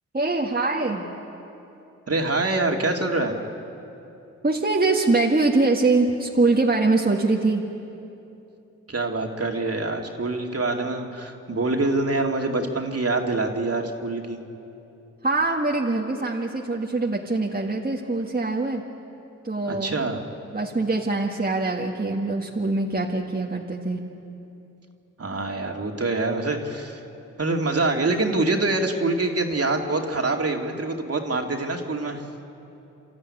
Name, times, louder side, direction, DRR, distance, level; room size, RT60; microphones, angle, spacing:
voice 1, 0.1-1.1 4.4-7.6 15.2-18.8 19.4-20.0 20.5-24.0, right 3 dB, 30° right, -1 dB, 1.9 m, -23 dB
voice 2, 2.1-3.3 8.9-14.4 19.7-20.2 25.2-27.0 27.4-32.2, right 2 dB, 45° right, 2 dB, 2.6 m, -25 dB
28.0 x 13.5 x 9.9 m, 2.8 s
cardioid pair, 55°, 32 cm